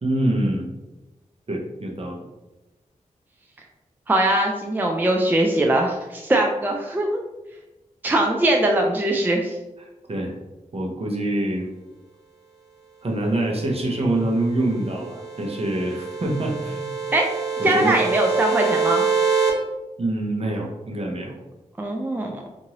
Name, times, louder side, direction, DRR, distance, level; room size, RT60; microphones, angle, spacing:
voice 1, 0.0-0.7 1.5-2.2 9.8-10.3 10.7-11.7 13.0-16.9 17.6-18.0 20.0-21.3, right 1 dB, 45° right, 0 dB, 0.7 m, -25 dB
voice 2, 4.1-7.2 8.0-9.6 17.1-17.2 17.6-19.0 21.8-22.4, right 1 dB, 15° right, 1 dB, 0.3 m, -21 dB
sound 1, 14.6-19.5, right 5 dB, 5° left, 1.4 m, -25 dB
2.8 x 2.6 x 2.8 m, 1.0 s
cardioid pair, 55°, 14 cm